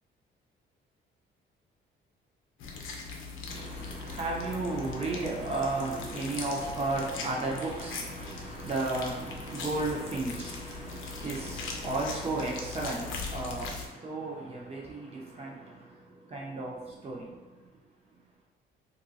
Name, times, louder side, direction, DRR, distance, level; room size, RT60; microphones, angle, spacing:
sound 1, 2.6-13.9, left 4 dB, 80° left, 0.6 m, -40 dB
voice 1, 3.4-17.7 18.1-18.2, right 2 dB, 30° right, 1.0 m, -34 dB
2.7 x 2.2 x 4.1 m
cardioid pair, 90°, 20 cm